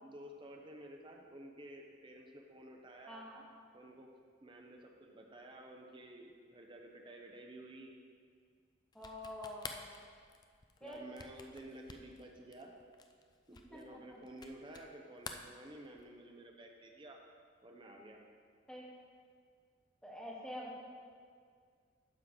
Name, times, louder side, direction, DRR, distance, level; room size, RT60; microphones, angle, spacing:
voice 1, 0.0-3.3 3.7-4.1 4.4-7.9 10.8-12.7 13.5-17.2 17.6-18.2, right 1 dB, 25° right, 2 dB, 0.6 m, -52 dB
voice 2, 3.1-3.4 8.9-9.8 10.8-11.0 13.7-14.2 18.7-18.8 20.0-20.8, left 1 dB, 5° left, -3 dB, 1.0 m, -46 dB
sound 1, 8.9-14.9 15.2-16.2, left 5 dB, 20° left, 0.4 m, -51 dB
9.6 x 3.8 x 6.7 m, 2.1 s
head